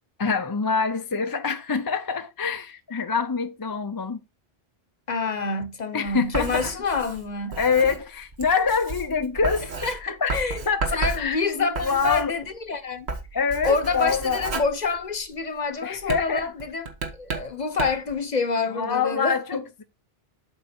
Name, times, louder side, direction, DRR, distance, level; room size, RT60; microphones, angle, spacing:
voice 1, 0.2-4.2 5.9-6.7 7.6-9.7 10.0-10.3 10.7-12.3 13.3-14.4 15.8-16.5 18.7-19.8, left 5 dB, 25° left, 0.5 m, -25 dB
voice 2, 5.1-7.6 9.8-10.6 10.9-13.1 13.6-16.9 17.1-19.6, left 4 dB, 45° left, 1.0 m, -27 dB
Writing, 6.1-12.7 13.0-15.5 16.0-18.1, right 3 dB, 80° right, 1.7 m, -33 dB
8.0 x 4.9 x 4.3 m
omnidirectional pair, 1.1 m